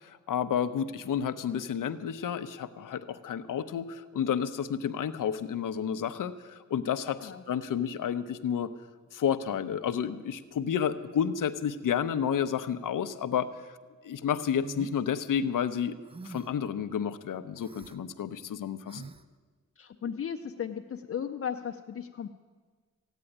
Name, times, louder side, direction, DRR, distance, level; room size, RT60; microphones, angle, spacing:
voice 1, 0.0-8.7 9.1-13.5 14.0-16.0 16.2-19.0, left 8 dB, 85° left, 11 dB, 0.8 m, -31 dB
sound 1, 14.6-15.0 16.1-16.6 17.6-18.0 18.9-19.2, right 4 dB, 20° right, 0.4 m, -45 dB
voice 2, 19.8-22.3, left 8 dB, 45° left, 5 dB, 0.6 m, -36 dB
15.5 x 9.2 x 9.9 m, 1.5 s
wide cardioid pair, 175°, 31 cm